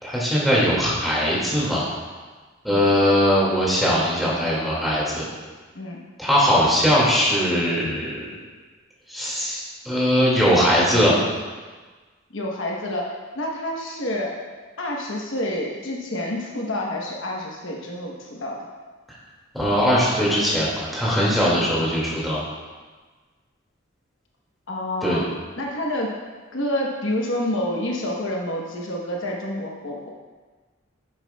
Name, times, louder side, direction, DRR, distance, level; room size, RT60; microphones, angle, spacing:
voice 1, 0.0-1.9 2.6-5.3 6.2-8.3 9.1-11.1 19.5-22.4 25.0-25.2, equal, ahead, -7 dB, 2.1 m, -20 dB
voice 2, 12.3-13.1 13.3-14.3 14.8-18.6 24.7-25.3 25.6-26.1 26.5-30.1, left 1 dB, 65° left, -2 dB, 1.1 m, -28 dB
10.0 x 7.4 x 2.3 m, 1.4 s
head